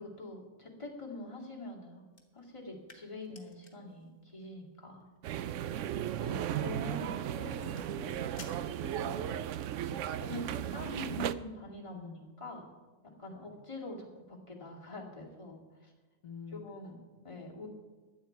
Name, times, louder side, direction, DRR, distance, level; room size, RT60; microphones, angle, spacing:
voice 1, 0.0-2.0 2.3-5.0 6.2-7.1 7.8-7.9 9.0-9.4 10.1-12.1 12.4-12.7 13.2-15.9 16.5-16.9 17.2-17.7, left 2 dB, 20° left, -3 dB, 2.5 m, -45 dB
sound 1, 2.1-9.4, left 4 dB, 50° left, 1.9 m, -59 dB
sound 2, 5.2-11.3, right 10 dB, 65° right, 0.8 m, -35 dB
voice 2, 5.7-8.9 11.9-12.4 13.2-13.5 16.2-17.0, left 5 dB, 65° left, 3 dB, 1.7 m, -51 dB
16.5 x 11.5 x 4.6 m, 1.3 s
omnidirectional pair, 1.6 m